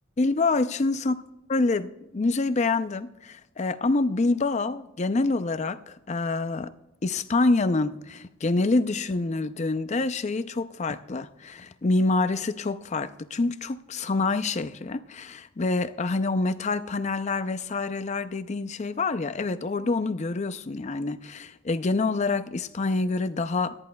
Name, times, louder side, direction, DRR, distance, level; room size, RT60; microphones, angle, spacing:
voice 1, 0.2-1.1 1.5-6.7 7.0-23.8, left 3 dB, 35° left, 0.5 m, -26 dB
22.5 x 10.5 x 2.3 m
head